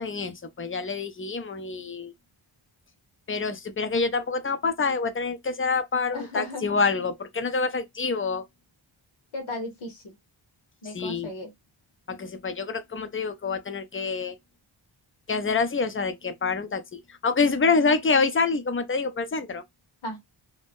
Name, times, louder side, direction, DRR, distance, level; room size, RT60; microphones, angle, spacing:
voice 1, 0.0-2.1 3.3-8.4 10.9-11.3 12.1-14.4 15.3-19.6, left 4 dB, 25° left, 0.5 m, -26 dB
voice 2, 6.1-6.7 9.3-10.0 10.8-11.5 20.0-20.2, left 1 dB, 75° left, 1.0 m, -35 dB
2.6 x 2.1 x 3.4 m
wide cardioid pair, 70°, 48 cm